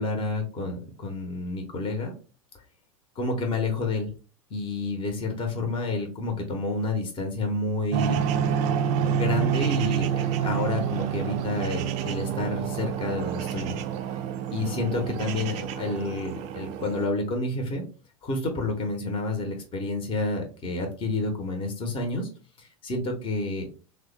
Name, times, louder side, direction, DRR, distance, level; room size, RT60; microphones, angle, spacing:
voice 1, 0.0-2.1 3.1-4.1 4.5-8.2 8.9-13.8 14.5-17.8 18.2-22.3 22.6-23.7, left 2 dB, 30° left, 3 dB, 0.8 m, -29 dB
sound 1, 7.9-17.1, right 8 dB, 40° right, 0.4 m, -28 dB
3.3 x 2.1 x 3.2 m, 0.36 s
figure-of-eight pair, 85°, 18 cm